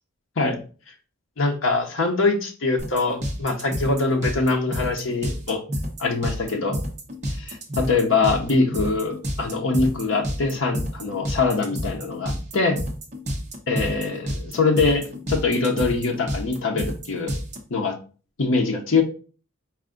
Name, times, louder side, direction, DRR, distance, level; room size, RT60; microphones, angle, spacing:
voice 1, 1.4-5.6 6.0-6.8 7.3-12.8 13.7-17.3 17.7-18.0 18.4-19.0, left 3 dB, 60° left, 1 dB, 0.7 m, -23 dB
Troy's disco dance club beat, 2.8-17.6, equal, 35° right, 0.8 m, -29 dB
4.7 x 2.5 x 3.6 m, 0.37 s
head